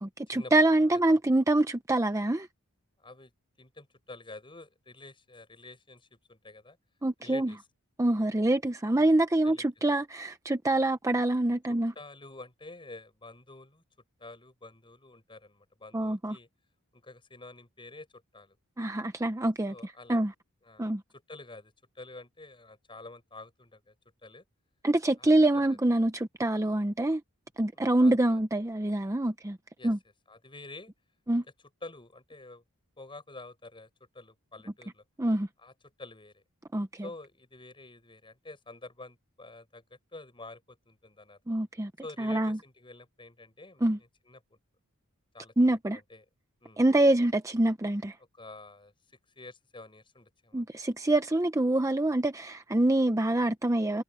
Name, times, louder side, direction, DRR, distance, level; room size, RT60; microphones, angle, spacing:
voice 1, 0.0-2.5 7.0-7.5 8.0-11.9 15.9-16.4 18.8-20.3 20.8-21.0 24.8-27.2 27.6-29.6 29.8-30.0 31.3-31.4 35.2-35.5 36.7-37.1 41.5-41.9 42.2-42.6 43.8-44.0 45.6-46.0 46.8-48.2 50.5-54.0, right 1 dB, 15° right, 0.7 m, -25 dB
voice 2, 3.0-3.3 3.6-6.8 7.2-7.6 8.9-9.0 9.4-9.7 11.7-13.8 14.2-16.5 16.9-18.6 19.7-20.2 20.6-23.9 24.2-24.4 25.2-25.3 25.5-25.8 27.7-28.4 29.8-29.9 30.3-30.9 31.8-32.6 33.0-33.9 34.1-35.0 35.6-35.7 36.0-36.4 37.0-39.8 40.1-41.4 42.0-43.8 44.3-44.6 45.3-46.2 46.6-46.8 48.3-48.9 49.4-50.6, left 2 dB, 25° left, 6.9 m, -48 dB
head